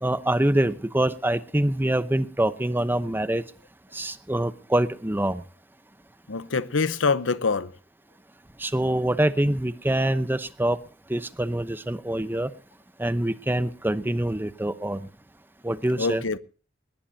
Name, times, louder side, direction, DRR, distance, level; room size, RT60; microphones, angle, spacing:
voice 1, 0.0-3.4 3.9-5.4 8.6-10.8 11.1-12.5 13.0-15.0 15.6-16.2, right 1 dB, 10° right, 0.8 m, -25 dB
voice 2, 6.3-7.8 16.0-16.4, left 4 dB, 85° left, 0.9 m, -25 dB
19.0 x 19.0 x 2.8 m
head